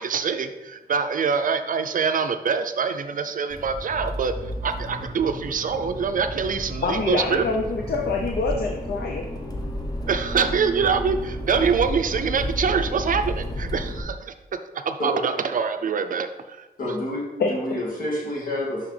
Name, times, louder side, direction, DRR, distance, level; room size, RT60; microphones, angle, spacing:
voice 1, 0.0-4.3 4.6-7.4 10.1-14.3 14.9-16.6, right 6 dB, 60° right, 8 dB, 0.4 m, -24 dB
Accelerating revving vroom, 3.5-14.0, equal, 25° left, 0.8 m, -32 dB
voice 2, 6.8-9.3 17.4-17.5, left 4 dB, 85° left, 1 dB, 0.6 m, -25 dB
voice 3, 16.8-18.9, left 1 dB, 60° left, -3 dB, 1.9 m, -28 dB
5.8 x 5.7 x 3.3 m, 1.1 s
wide cardioid pair, 135°, 16 cm